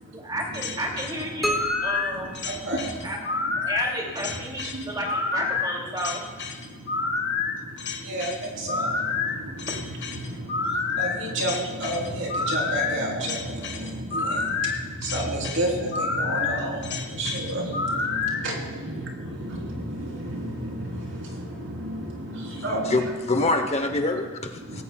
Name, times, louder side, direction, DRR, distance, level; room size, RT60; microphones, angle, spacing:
voice 1, 0.1-2.3 3.0-6.4 9.7-9.8 18.8-18.9 19.2-19.3, right 1 dB, 20° right, -1 dB, 2.6 m, -32 dB
sound 1, 0.5-18.4, left 4 dB, 55° left, 1.3 m, -28 dB
sound 2, 1.4-3.3, equal, ahead, 1.0 m, -32 dB
voice 2, 1.4-1.7 2.2-3.1 3.5-3.7 4.6-4.9 6.6-23.0 24.6-24.8, right 1 dB, 65° right, -1 dB, 3.6 m, -32 dB
voice 3, 22.8-24.8, left 2 dB, 30° left, 6 dB, 0.9 m, -25 dB
18.5 x 16.5 x 2.3 m, 1.4 s
head